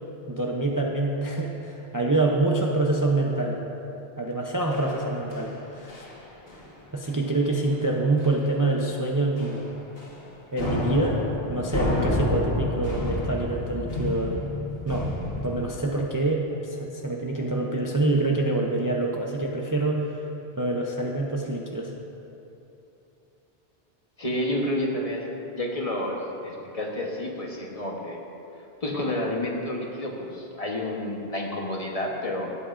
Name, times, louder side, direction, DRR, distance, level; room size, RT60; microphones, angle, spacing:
voice 1, 0.3-3.6 4.2-6.0 6.9-9.7 10.5-11.2 11.5-14.4 14.8-15.1 15.4-20.2 20.6-21.9, right 2 dB, 25° right, -1 dB, 0.5 m, -26 dB
sound 1, 4.7-5.6 5.9-6.2 6.5-6.7 7.0-7.2 7.6-7.7 8.2-8.5 8.8-9.0 9.4-10.3 10.6-15.5, left 2 dB, 70° left, 1.7 m, -30 dB
voice 2, 24.2-28.2 28.8-32.5, left 1 dB, 35° left, -1 dB, 1.1 m, -30 dB
16.5 x 8.4 x 2.5 m, 2.9 s
omnidirectional pair, 1.0 m